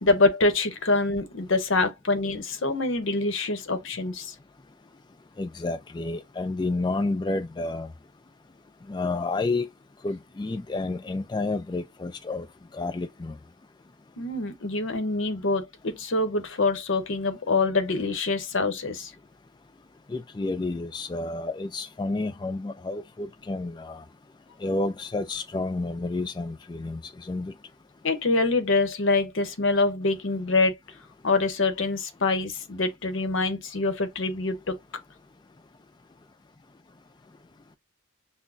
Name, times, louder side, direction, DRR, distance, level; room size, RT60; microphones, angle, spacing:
voice 1, 0.0-4.3 14.2-19.1 28.0-30.7 31.2-34.8, left 3 dB, 65° left, 0.8 m, -25 dB
voice 2, 5.4-7.9 8.9-9.7 10.0-12.5 12.7-13.4 20.1-24.0 24.6-27.5, left 2 dB, 20° left, 0.3 m, -30 dB
5.9 x 2.1 x 2.5 m
head